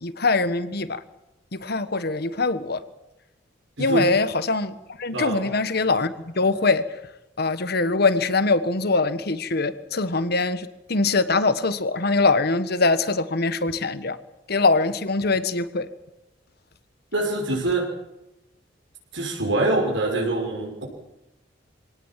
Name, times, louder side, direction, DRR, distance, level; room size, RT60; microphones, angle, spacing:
voice 1, 0.0-1.0 1.5-2.8 3.8-6.8 7.4-14.2 14.5-15.9, left 3 dB, 60° left, 13 dB, 1.5 m, -23 dB
voice 2, 3.8-4.1 5.1-5.5 17.1-17.9 19.1-20.8, right 2 dB, 80° right, -1 dB, 6.2 m, -24 dB
24.0 x 18.5 x 7.5 m, 0.94 s
head